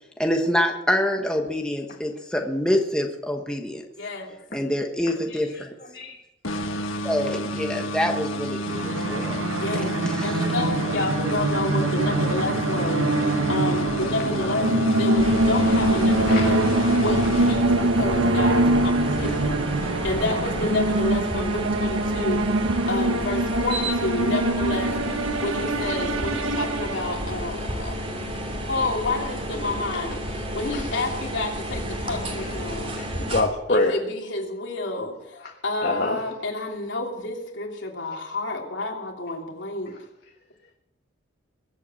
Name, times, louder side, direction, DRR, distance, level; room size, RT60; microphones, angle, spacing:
voice 1, 0.2-3.8 4.5-5.5 7.0-9.5 9.7-10.4, left 1 dB, 5° left, 2 dB, 1.3 m, -26 dB
voice 2, 4.0-4.4 9.4-25.0 25.4-28.0 28.7-33.0 33.7-39.9, left 2 dB, 70° left, 1 dB, 3.1 m, -30 dB
sound 1, 6.4-18.2, equal, 90° left, 1.7 m, -31 dB
sound 2, 8.6-27.4, right 2 dB, 85° right, 1.4 m, -24 dB
sound 3, 15.2-33.4, equal, 30° right, 2.8 m, -31 dB
voice 3, 32.9-33.9 35.8-36.2, left 2 dB, 50° left, 2 dB, 1.5 m, -26 dB
22.0 x 8.4 x 7.6 m, 0.89 s
head